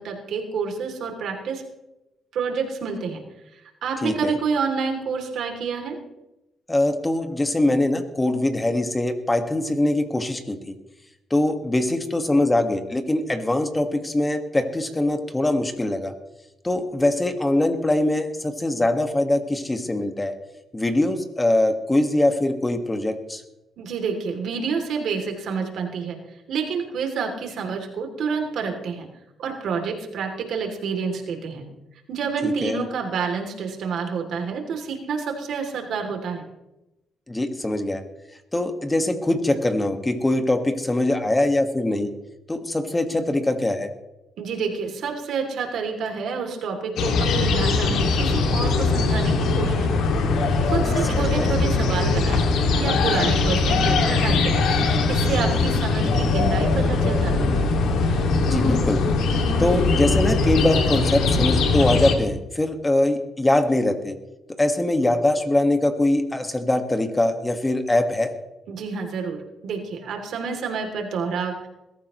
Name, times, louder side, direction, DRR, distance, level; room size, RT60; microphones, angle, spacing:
voice 1, 0.0-1.6 2.3-3.2 3.5-6.0 23.8-26.2 26.5-29.1 29.4-31.7 32.1-36.4 44.4-50.1 50.6-52.4 52.7-54.6 55.1-57.6 68.7-71.7, right 5 dB, 70° right, 3 dB, 3.0 m, -28 dB
voice 2, 4.0-4.3 6.7-10.7 11.3-16.1 16.6-20.4 20.7-23.4 32.4-32.8 37.3-38.0 38.5-42.1 42.5-43.9 50.9-51.5 58.5-59.0 59.6-64.1 64.6-68.3, left 1 dB, 15° left, 6 dB, 1.7 m, -22 dB
sound 1, 47.0-62.2, left 3 dB, 80° left, 2.4 m, -21 dB
21.5 x 13.5 x 3.2 m, 0.95 s
cardioid pair, 90°, 0 cm